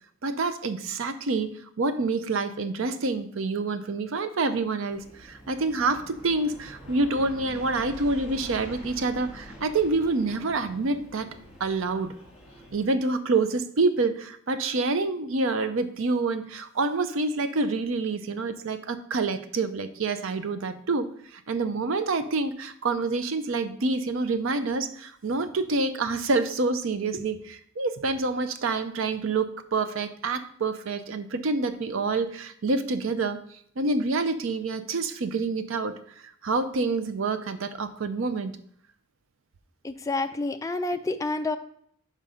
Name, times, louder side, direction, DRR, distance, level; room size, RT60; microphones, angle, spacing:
voice 1, 0.2-1.5 1.8-11.3 11.6-12.1 12.7-33.4 33.8-36.0 36.4-38.6, right 3 dB, 60° right, 11 dB, 0.5 m, -27 dB
Aircraft, 4.9-12.9, equal, 5° right, 1.5 m, -45 dB
voice 2, 39.8-41.6, left 2 dB, 15° left, 7 dB, 0.4 m, -28 dB
5.1 x 5.0 x 5.5 m, 0.65 s
head